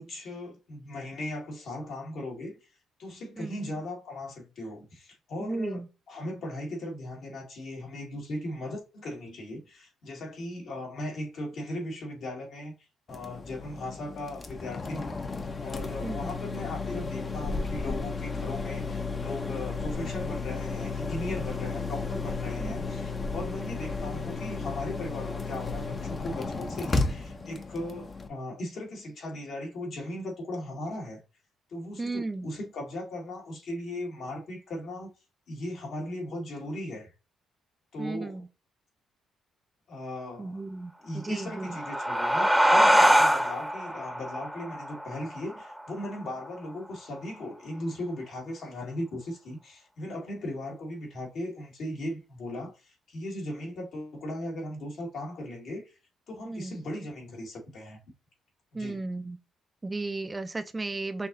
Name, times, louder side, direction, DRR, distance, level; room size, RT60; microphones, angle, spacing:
voice 1, 0.0-2.5 3.0-12.7 13.1-15.2 15.6-31.2 31.7-35.1 35.5-37.1 37.9-38.4 39.9-40.6 41.0-55.9 56.3-58.0 58.7-59.1, left 1 dB, 65° left, 1.9 m, -38 dB
voice 2, 5.4-5.9 16.0-16.3 22.6-22.8 32.0-32.5 38.0-38.4 40.4-41.8 56.5-56.7 58.7-59.4 59.8-61.3, right 3 dB, 20° right, 0.4 m, -34 dB
sound 1, 13.1-28.3, left 3 dB, 30° left, 0.6 m, -33 dB
sound 2, 41.4-46.6, equal, ahead, 0.8 m, -24 dB
5.7 x 2.7 x 2.6 m
cardioid pair, 90°, 0 cm